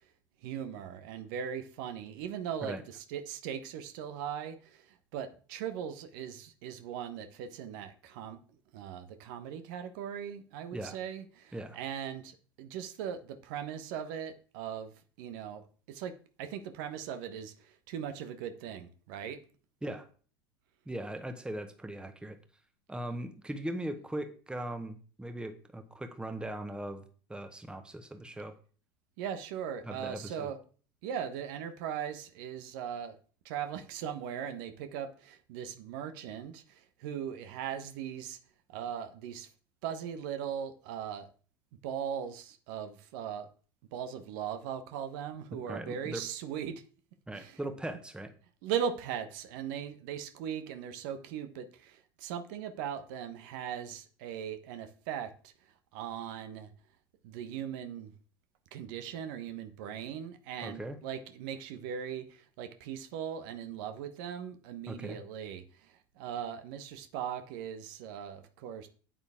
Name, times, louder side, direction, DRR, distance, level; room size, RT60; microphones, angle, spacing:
voice 1, 0.4-8.4 8.7-16.1 16.4-19.4 29.2-30.6 31.0-33.2 33.4-38.4 38.7-39.5 39.8-41.3 41.8-43.5 43.9-46.8 47.3-47.6 48.6-55.5 55.9-56.7 57.2-58.1 58.7-68.9, right 8 dB, 65° right, 1.2 m, -39 dB
voice 2, 20.8-22.4 22.9-27.0 27.3-28.6 29.8-30.5 45.7-46.3 47.3-48.3 60.6-61.0 64.9-65.2, right 1 dB, 10° right, 1.4 m, -39 dB
8.9 x 8.7 x 3.7 m
hypercardioid pair, 75°, 12 cm